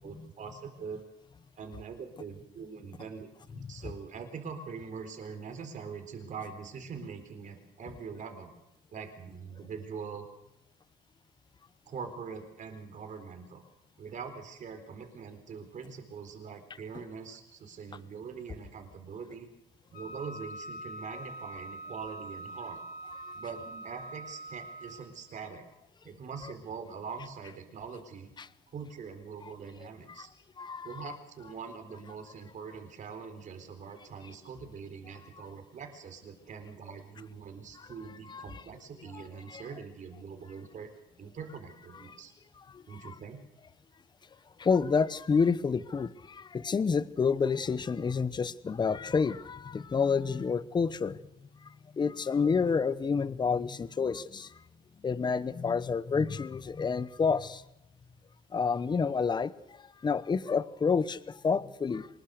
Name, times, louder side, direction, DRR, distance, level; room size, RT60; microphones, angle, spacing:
voice 1, 0.0-1.0 1.6-8.5 8.9-10.3 11.9-13.6 14.0-19.5 19.9-22.8 23.4-25.6 26.0-28.3 28.7-30.3 30.8-40.9 41.2-42.3 42.9-43.4, right 5 dB, 45° right, 6 dB, 4.1 m, -43 dB
Wind instrument woodwind instrument, 19.9-25.1, right 2 dB, 65° left, 4.1 m, -44 dB
voice 2, 30.6-31.1 38.3-38.6 39.1-39.2 39.5-39.6 42.1-42.2 42.7-42.8 44.6-51.2 52.0-54.5 55.0-57.6 58.5-59.5 60.0-62.1, left 5 dB, 25° left, 16 dB, 0.9 m, -29 dB
24.5 x 20.5 x 6.6 m, 0.85 s
cardioid pair, 110°, 17 cm